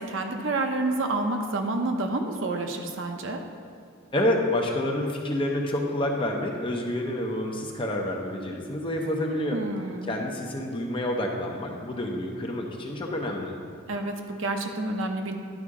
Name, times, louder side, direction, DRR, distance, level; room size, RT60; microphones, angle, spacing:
voice 1, 0.0-3.4 9.5-10.1 13.9-15.4, right 2 dB, 65° right, 4 dB, 0.7 m, -29 dB
voice 2, 4.1-9.6 10.1-13.6, left 1 dB, 25° left, 0 dB, 0.7 m, -28 dB
11.0 x 4.9 x 3.7 m, 2.2 s
head